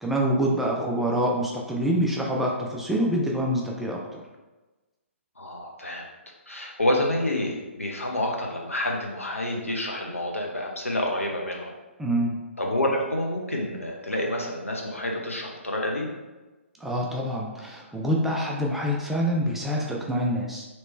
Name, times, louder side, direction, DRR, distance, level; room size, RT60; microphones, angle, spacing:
voice 1, 0.0-4.2 12.0-12.3 16.8-20.7, equal, 5° right, -2 dB, 0.3 m, -26 dB
voice 2, 5.4-6.0 6.5-11.7 12.6-16.1, left 1 dB, 80° left, 0 dB, 0.7 m, -28 dB
3.0 x 2.9 x 3.1 m, 1.1 s
figure-of-eight pair, 125°, 7 cm